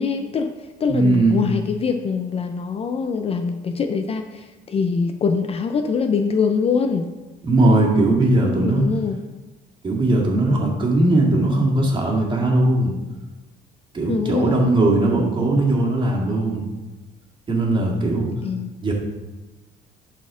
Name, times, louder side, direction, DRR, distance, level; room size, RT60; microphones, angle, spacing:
voice 1, 0.0-7.1 8.3-9.2 14.1-14.6 18.4-18.7, left 5 dB, 35° left, 7 dB, 0.5 m, -23 dB
voice 2, 0.9-1.4 7.4-8.8 9.8-12.9 13.9-16.7 17.5-18.3 18.8-18.9, right 2 dB, 30° right, -1 dB, 2.0 m, -19 dB
11.0 x 4.3 x 3.7 m, 1.1 s
cardioid pair, 110°, 17 cm